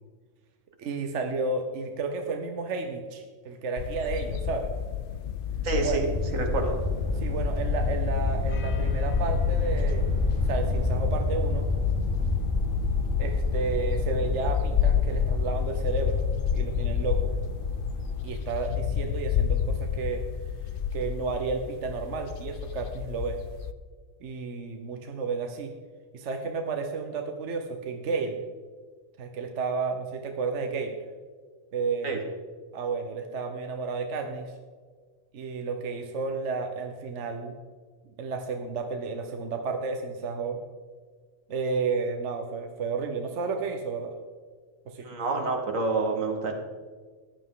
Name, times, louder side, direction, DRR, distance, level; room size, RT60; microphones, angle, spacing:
voice 1, 0.8-4.7 5.8-6.0 7.2-11.7 13.2-16.2 16.5-17.3 18.2-20.2 20.9-23.4 24.2-25.7 26.1-28.4 29.2-31.0 31.7-32.2 32.7-34.5 35.3-37.5 38.2-40.6 41.5-44.1 44.9-45.1, right 4 dB, 65° right, 5 dB, 1.2 m, -32 dB
sound 1, 3.8-23.7, left 8 dB, 60° left, 0.6 m, -30 dB
voice 2, 5.6-6.1 6.3-6.8 32.0-32.2 45.0-46.5, right 3 dB, 85° right, 3 dB, 2.0 m, -27 dB
sound 2, 5.9-18.3, left 2 dB, 35° left, 2.9 m, -29 dB
15.0 x 10.5 x 3.8 m, 1.5 s
omnidirectional pair, 1.3 m